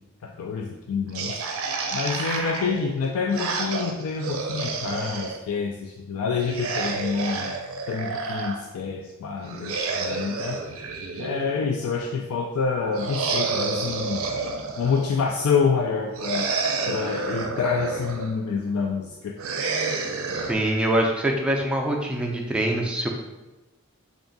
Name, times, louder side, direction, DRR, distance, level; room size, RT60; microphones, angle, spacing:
voice 1, 0.2-1.4 1.9-7.5 7.9-10.6 11.2-14.3 14.8-16.5 16.9-19.4, left 5 dB, 90° left, 1 dB, 0.3 m, -27 dB
sound 1, 1.1-5.4 6.4-8.6 9.4-11.8 13.0-15.2 16.2-18.3 19.4-20.5, right 4 dB, 80° right, 0.5 m, -29 dB
voice 2, 20.3-23.1, right 1 dB, 5° right, 0 dB, 0.4 m, -24 dB
3.5 x 2.4 x 3.8 m, 1.1 s
head